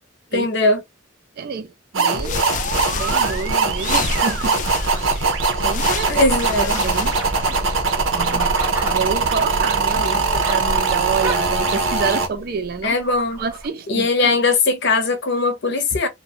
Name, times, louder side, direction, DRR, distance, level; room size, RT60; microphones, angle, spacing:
voice 1, 0.3-0.8 6.1-6.8 8.3-8.4 12.8-13.4 13.9-16.1, left 3 dB, 65° left, 0.7 m, -19 dB
voice 2, 1.4-2.5 2.9-4.6 5.0-5.3 5.6-6.2 6.7-7.2 8.1-8.5 8.8-12.9 13.4-14.1, right 5 dB, 50° right, 0.4 m, -28 dB
sound 1, 1.9-12.3, right 4 dB, 90° right, 0.8 m, -21 dB
sound 2, 2.1-7.8, left 6 dB, 40° left, 0.3 m, -30 dB
sound 3, 4.1-13.7, right 2 dB, 15° right, 0.7 m, -36 dB
2.5 x 2.2 x 2.7 m
head